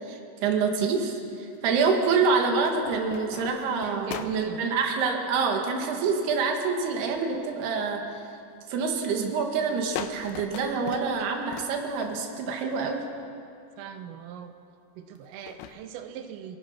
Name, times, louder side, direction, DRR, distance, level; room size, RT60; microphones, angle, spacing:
voice 1, 0.1-8.0 8.7-13.0, right 5 dB, 60° right, 2 dB, 3.7 m, -26 dB
sound 1, 0.8-1.8 2.6-4.6 6.7-7.4 7.8-8.3 8.8-9.1 9.4-9.5 10.0-12.5 13.2-13.3 15.2-15.8, left 10 dB, 85° left, 3.4 m, -40 dB
voice 2, 3.8-4.7 13.8-14.5 15.0-16.6, right 9 dB, 90° right, 7 dB, 3.7 m, -40 dB
29.5 x 18.5 x 5.9 m, 2.5 s
omnidirectional pair, 5.7 m